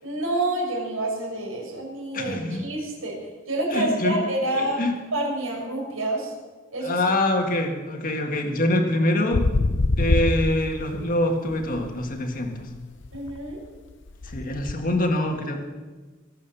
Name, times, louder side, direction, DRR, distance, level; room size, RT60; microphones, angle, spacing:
voice 1, 0.0-3.2 3.5-4.8 5.1-6.3 6.7-7.0 13.1-13.6, right 1 dB, 80° right, -2 dB, 6.6 m, -28 dB
voice 2, 2.1-2.7 3.7-4.2 4.5-4.9 6.8-9.5 10.0-12.7 14.2-15.6, left 1 dB, 40° left, 3 dB, 1.9 m, -25 dB
sound 1, 9.3-11.2 11.5-14.7, left 2 dB, 60° left, 0.7 m, -26 dB
23.0 x 8.1 x 7.1 m, 1.3 s
head